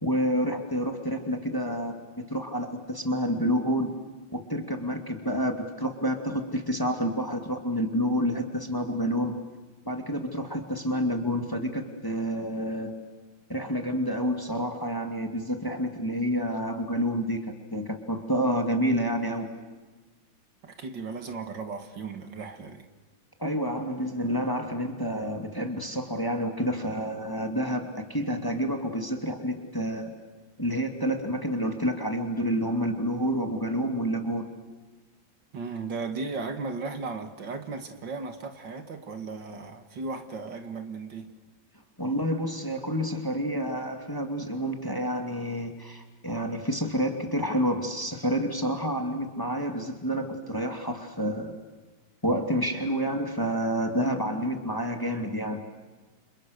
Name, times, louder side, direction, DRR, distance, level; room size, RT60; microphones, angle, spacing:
voice 1, 0.0-1.9 2.3-3.9 4.3-9.3 9.9-12.9 13.5-17.4 17.7-19.5 23.4-30.1 30.6-34.5 42.0-51.5 52.2-55.6, equal, 10° left, 5 dB, 2.3 m, -29 dB
voice 2, 20.6-22.9 35.5-41.3, right 4 dB, 65° right, 7 dB, 2.5 m, -36 dB
30.0 x 27.5 x 6.6 m, 1.3 s
omnidirectional pair, 2.2 m